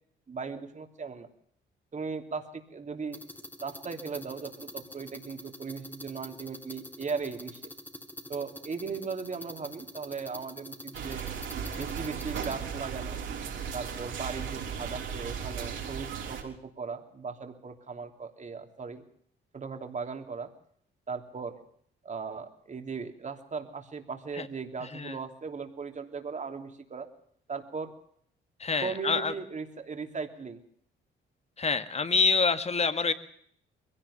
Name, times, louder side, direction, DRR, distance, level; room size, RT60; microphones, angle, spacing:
voice 1, 0.3-1.3 1.9-3.2 3.6-7.7 8.3-11.2 11.8-13.2 13.7-19.0 19.5-20.5 21.1-21.6 22.0-27.1 27.5-27.9 28.8-30.6, right 5 dB, 35° right, 6 dB, 3.1 m, -38 dB
sound 1, 3.1-12.6, left 1 dB, 10° left, 2.1 m, -46 dB
sound 2, 10.9-16.4, right 7 dB, 75° right, 5.8 m, -36 dB
voice 2, 28.6-29.3 31.6-33.1, left 5 dB, 35° left, 12 dB, 1.8 m, -26 dB
22.0 x 17.0 x 7.1 m, 0.65 s
cardioid pair, 90°, 20 cm